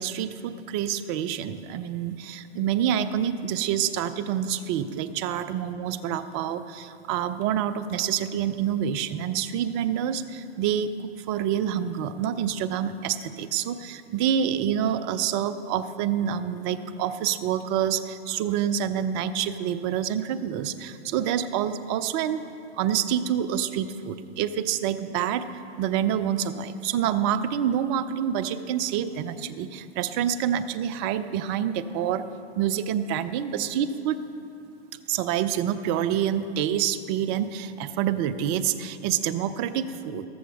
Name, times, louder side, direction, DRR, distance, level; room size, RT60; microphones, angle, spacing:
voice 1, 0.0-10.9 11.2-22.4 22.8-25.4 25.8-32.2 32.6-34.2 35.1-40.2, right 9 dB, 25° right, 13 dB, 0.4 m, -27 dB
14.0 x 13.0 x 3.5 m, 2.5 s
hypercardioid pair, 120°, 33 cm